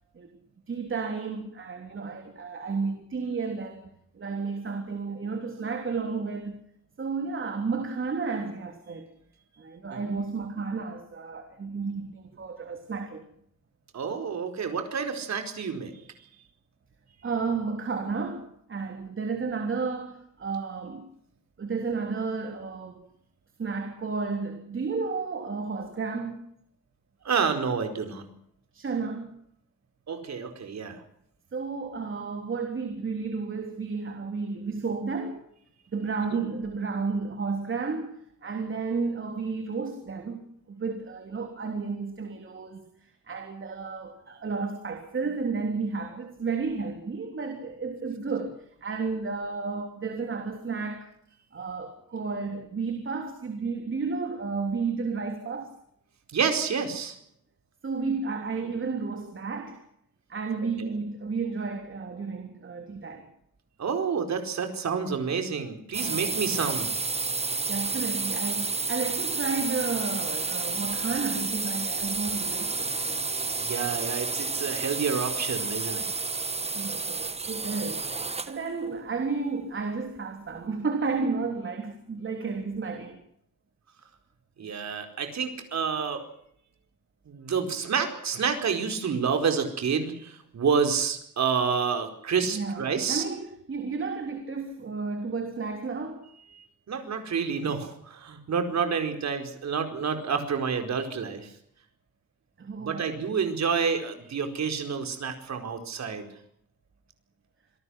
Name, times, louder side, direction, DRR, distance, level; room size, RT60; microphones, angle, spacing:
voice 1, 0.7-6.6 7.0-9.1 9.6-13.3 17.2-21.1 21.6-23.1 23.6-26.4 28.7-29.3 31.5-35.4 35.9-51.1 51.5-55.7 57.8-59.8 60.3-63.3 67.7-73.2 76.7-83.2 92.4-96.3 102.6-103.1, right 4 dB, 40° right, 3.4 m, -32 dB
voice 2, 13.9-15.9 27.2-28.2 30.1-31.0 56.3-57.2 60.8-60.9 63.8-66.9 73.7-76.1 84.6-86.2 87.3-93.2 96.9-101.5 102.8-106.3, right 6 dB, 55° right, 4.7 m, -29 dB
sound 1, 65.9-78.6, right 3 dB, 20° right, 1.2 m, -30 dB
27.0 x 19.0 x 6.4 m
wide cardioid pair, 135°, 32 cm